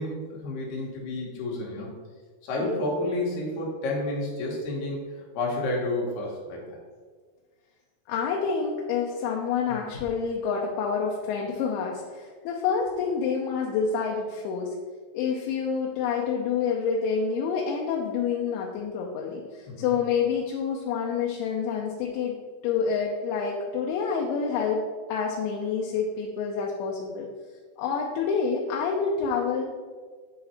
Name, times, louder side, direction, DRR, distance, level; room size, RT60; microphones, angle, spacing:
voice 1, 0.0-1.9 2.4-5.0 5.3-6.8 9.7-10.0 19.7-19.9, left 2 dB, 70° left, -3 dB, 3.1 m, -30 dB
voice 2, 8.1-14.7 15.1-22.4 22.6-24.8 25.1-27.3 27.8-29.6, left 6 dB, 90° left, -1 dB, 3.0 m, -28 dB
9.6 x 4.1 x 4.2 m, 1.5 s
omnidirectional pair, 5.0 m